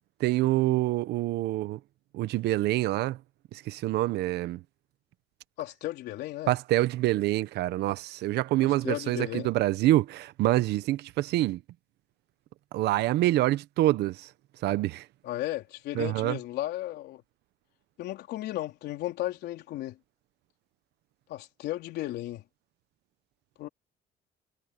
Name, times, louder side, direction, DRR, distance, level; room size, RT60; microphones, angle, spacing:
voice 1, 0.2-1.8 2.1-3.2 3.5-4.6 6.5-11.6 12.7-14.3 14.6-15.1 15.9-16.4, right 16 dB, 80° right, 1.0 m, -26 dB
voice 2, 5.6-6.5 8.8-9.5 15.2-17.2 18.0-20.0 21.3-22.4 23.6-23.7, left 15 dB, 80° left, 3.9 m, -34 dB
cardioid pair, 110°, 17 cm